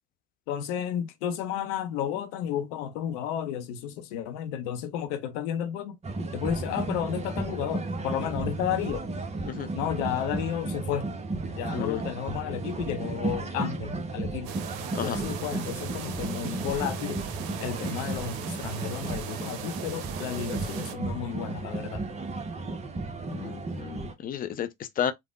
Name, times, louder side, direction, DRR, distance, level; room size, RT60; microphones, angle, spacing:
voice 1, 0.5-6.0 6.3-9.1 9.7-11.1 11.6-14.5 15.0-17.2 17.6-22.0, left 9 dB, 65° left, 0.6 m, -32 dB
sound 1, 6.0-24.1, right 2 dB, 15° right, 0.6 m, -34 dB
sound 2, 14.4-20.9, right 9 dB, 60° right, 0.6 m, -39 dB
voice 2, 23.3-25.1, left 9 dB, 25° left, 0.4 m, -32 dB
3.3 x 2.1 x 2.3 m
hypercardioid pair, 70°, 39 cm